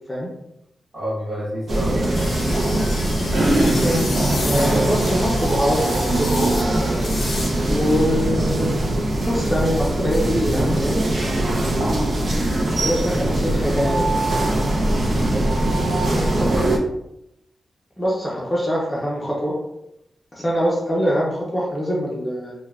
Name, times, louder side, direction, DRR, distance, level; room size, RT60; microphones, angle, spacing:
voice 1, 0.9-2.4 15.3-16.7, equal, 35° right, -7 dB, 1.4 m, -30 dB
sound 1, 1.7-16.8, right 1 dB, 50° right, 0.5 m, -21 dB
sound 2, 2.1-8.0, left 2 dB, 65° left, 0.7 m, -32 dB
voice 2, 3.6-4.1 4.4-6.7 7.7-8.8 9.3-11.8 12.7-14.0 18.0-19.6 20.3-22.5, equal, 15° left, -5 dB, 0.6 m, -24 dB
2.9 x 2.2 x 2.3 m, 0.82 s
wide cardioid pair, 100°, 0 cm